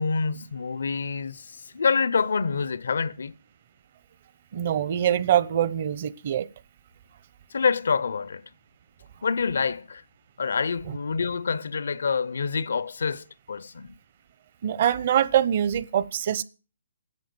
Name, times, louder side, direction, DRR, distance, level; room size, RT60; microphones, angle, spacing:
voice 1, 0.0-3.4 7.5-8.4 9.2-10.0 10.4-14.0, left 5 dB, 75° left, 0.6 m, -27 dB
voice 2, 4.5-6.5 14.6-16.4, right 10 dB, 50° right, 0.8 m, -24 dB
10.5 x 7.3 x 7.6 m
hypercardioid pair, 145°, 0 cm